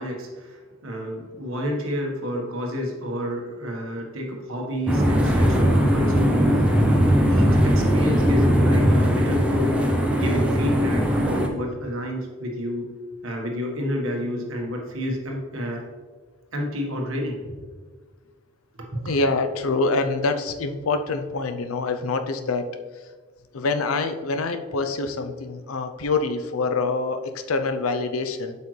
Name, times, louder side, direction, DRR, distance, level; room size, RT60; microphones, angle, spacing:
voice 1, 0.0-6.8 7.3-9.7 10.1-12.8 13.2-15.8 16.5-17.6 18.8-19.1, equal, 80° right, 1 dB, 1.4 m, -30 dB
sound 1, 4.9-11.5, equal, 5° right, 0.6 m, -19 dB
voice 2, 19.0-22.7 23.5-28.6, left 3 dB, 90° left, 8 dB, 0.6 m, -25 dB
7.8 x 5.6 x 3.2 m, 1.5 s
head